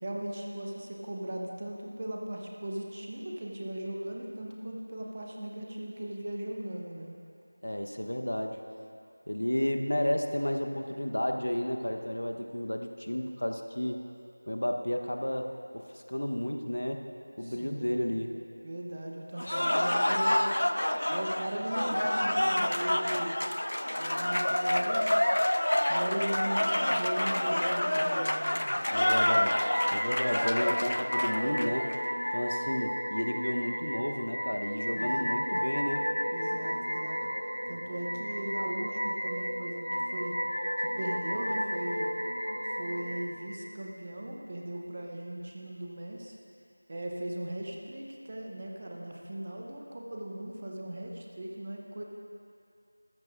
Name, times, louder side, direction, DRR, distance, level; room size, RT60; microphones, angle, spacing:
voice 1, 0.0-7.2 17.4-18.2 18.6-20.6 21.1-23.4 24.0-25.3 25.9-28.8 35.0-35.5 36.3-37.2 37.7-40.4 40.8-42.1 42.7-46.4 46.9-52.0, right 1 dB, 20° right, -1 dB, 0.6 m, -38 dB
voice 2, 7.6-8.6 9.3-14.0 14.5-17.1 17.4-18.4 28.9-31.9 32.3-36.0, left 1 dB, 90° left, 4 dB, 1.0 m, -32 dB
Cheering / Applause, 19.4-32.0, left 1 dB, 55° left, 0.4 m, -28 dB
sound 1, 28.8-43.2, equal, 35° left, 2.2 m, -33 dB
14.5 x 13.5 x 2.5 m, 2.5 s
figure-of-eight pair, 180°, 0 cm